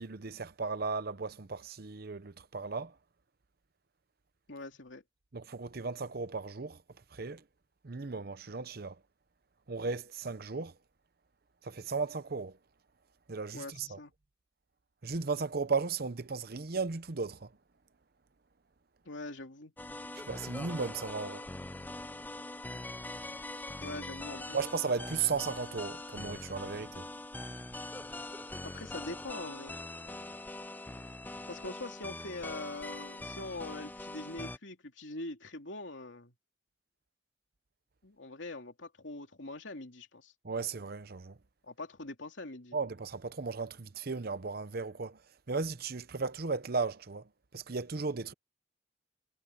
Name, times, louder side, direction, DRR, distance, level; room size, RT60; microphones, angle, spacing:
voice 1, 0.0-2.9 5.3-6.8 7.1-7.4 7.8-9.0 9.7-10.7 11.6-12.6 13.3-14.0 15.0-17.5 20.3-21.5 24.5-27.1 40.4-41.4 42.7-45.2 45.5-47.3 47.5-48.3, right 4 dB, 55° right, 0.8 m, -35 dB
voice 2, 4.5-5.0 13.5-14.1 19.0-19.7 23.8-24.6 28.6-29.8 31.5-36.3 38.0-40.3 41.6-42.8, left 2 dB, 80° left, 2.9 m, -43 dB
sound 1, 19.8-34.6, left 2 dB, 10° left, 0.4 m, -43 dB
head